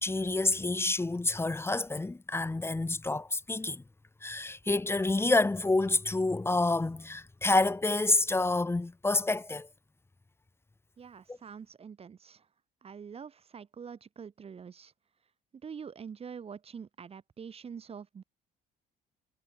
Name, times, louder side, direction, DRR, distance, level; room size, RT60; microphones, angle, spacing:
voice 1, 0.0-3.8 4.2-9.7 11.3-11.4, left 2 dB, 15° left, 2.7 m, -28 dB
voice 2, 11.0-12.4 12.8-14.9 15.6-18.2, right 6 dB, 35° right, 2.1 m, -45 dB
cardioid pair, 110°, 17 cm